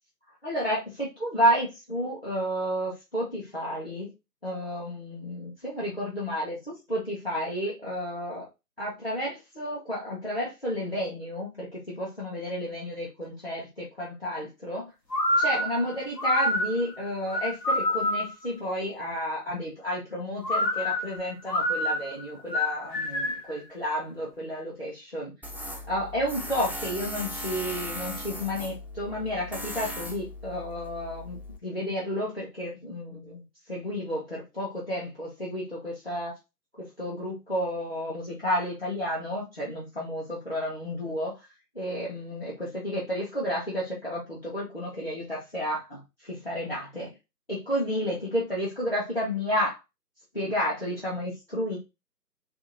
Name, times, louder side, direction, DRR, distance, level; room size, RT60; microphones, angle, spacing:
voice 1, 0.4-4.1 4.4-6.6 6.9-8.4 8.8-14.9 15.4-25.3 25.9-36.3 36.8-41.4 41.7-47.1 47.5-49.8 50.3-51.8, equal, 35° left, -6 dB, 0.9 m, -31 dB
sound 1, 15.1-18.4 20.4-23.5, left 1 dB, 80° left, 1.1 m, -27 dB
Tools, 25.4-31.6, equal, 5° right, 0.3 m, -38 dB
2.9 x 2.7 x 2.7 m, 0.24 s
figure-of-eight pair, 160°, 50 cm